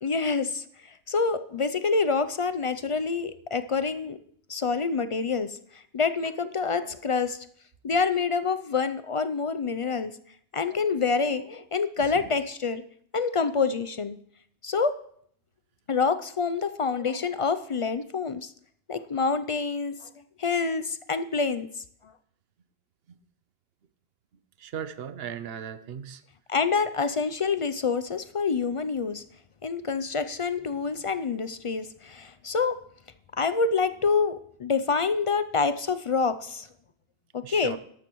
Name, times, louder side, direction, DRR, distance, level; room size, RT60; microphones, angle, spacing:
voice 1, 0.0-4.2 4.5-5.6 5.9-7.4 7.8-10.1 10.5-12.8 13.1-14.2 14.6-15.0 15.9-18.5 18.9-20.1 20.4-21.7 26.5-29.2 29.6-32.8 33.4-36.7 37.3-37.8, left 5 dB, 50° left, 12 dB, 0.4 m, -27 dB
voice 2, 24.6-26.2 37.4-37.8, right 8 dB, 70° right, 12 dB, 0.9 m, -37 dB
13.0 x 12.0 x 3.0 m, 0.64 s
omnidirectional pair, 1.0 m